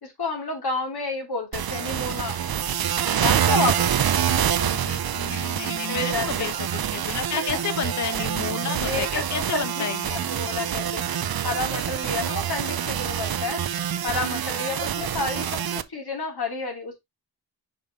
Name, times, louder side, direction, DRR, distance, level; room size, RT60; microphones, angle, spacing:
voice 1, 0.0-2.4 3.2-4.1 5.8-6.6 7.4-7.6 8.6-9.2 9.5-13.6 14.0-17.0, left 3 dB, 60° left, 2.9 m, -30 dB
sound 1, 1.5-15.8, right 9 dB, 55° right, 0.6 m, -26 dB
voice 2, 4.6-10.2, left 8 dB, 45° left, 0.6 m, -32 dB
5.6 x 5.2 x 3.6 m
wide cardioid pair, 80°, 43 cm